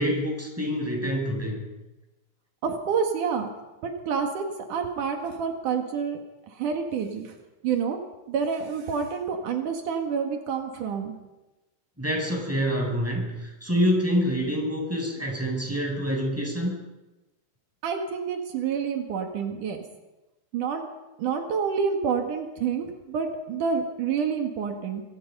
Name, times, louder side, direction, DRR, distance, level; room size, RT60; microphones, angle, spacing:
voice 1, 0.0-1.6 12.0-16.7, equal, 5° right, -1 dB, 7.5 m, -26 dB
voice 2, 2.6-3.5 3.8-6.2 6.5-7.4 7.6-8.0 8.3-11.1 17.8-19.8 20.5-20.9 21.2-25.0, right 6 dB, 80° right, 4 dB, 3.4 m, -28 dB
26.0 x 25.0 x 5.5 m, 1.0 s
omnidirectional pair, 3.5 m